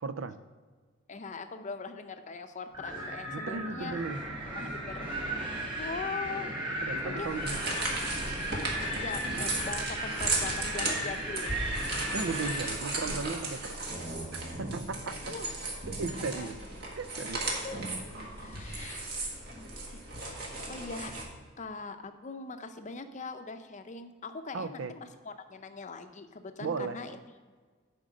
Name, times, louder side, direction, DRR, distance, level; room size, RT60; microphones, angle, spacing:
voice 1, 0.0-0.4 3.3-4.2 6.8-7.8 12.1-14.0 14.3-15.3 15.9-16.6 16.9-17.4 24.5-25.0 26.6-27.2, right 4 dB, 70° right, 12 dB, 0.5 m, -36 dB
voice 2, 1.1-4.0 4.5-5.2 5.7-6.8 7.0-7.4 8.9-11.7 15.1-15.5 16.3-16.6 17.5-18.0 18.4-19.1 19.6-20.3 20.7-21.2 21.6-27.2, left 4 dB, 40° left, 8 dB, 0.6 m, -41 dB
Wind, 2.7-12.7, right 1 dB, 25° right, 2.5 m, -36 dB
sound 1, 7.2-21.2, right 2 dB, 55° right, 1.7 m, -35 dB
7.7 x 5.2 x 6.2 m, 1.5 s
head